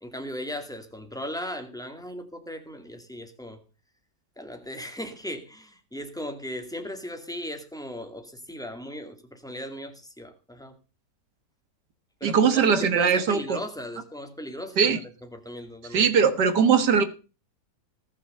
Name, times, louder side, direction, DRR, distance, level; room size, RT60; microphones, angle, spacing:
voice 1, 0.0-3.6 4.4-10.7 12.2-15.0 15.3-16.0, equal, ahead, 5 dB, 2.2 m, -37 dB
voice 2, 12.2-13.6 14.8-15.0 15.9-17.0, right 6 dB, 85° right, 11 dB, 2.0 m, -20 dB
19.0 x 7.1 x 5.5 m, 0.34 s
omnidirectional pair, 1.8 m